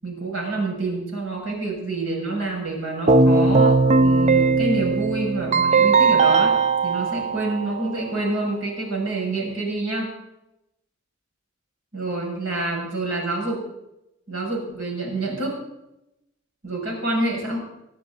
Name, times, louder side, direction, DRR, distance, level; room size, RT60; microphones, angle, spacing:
voice 1, 0.0-6.6 6.8-10.1 11.9-13.6 14.3-15.6 16.6-17.6, right 2 dB, 80° right, -1 dB, 6.8 m, -27 dB
Keyboard (musical), 3.1-8.0, right 4 dB, 35° right, 0.6 m, -18 dB
21.0 x 12.5 x 4.1 m, 0.88 s
head